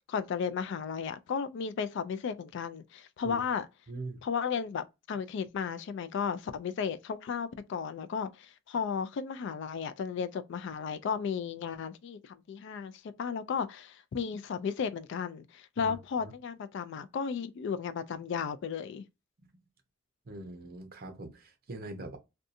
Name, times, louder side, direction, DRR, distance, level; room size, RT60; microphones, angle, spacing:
voice 1, 0.1-3.7 4.2-12.9 13.2-19.0, left 6 dB, 60° left, 0.3 m, -34 dB
voice 2, 3.9-4.2 15.8-16.3 20.3-22.2, right 2 dB, 50° right, 0.7 m, -42 dB
2.6 x 2.3 x 2.4 m
head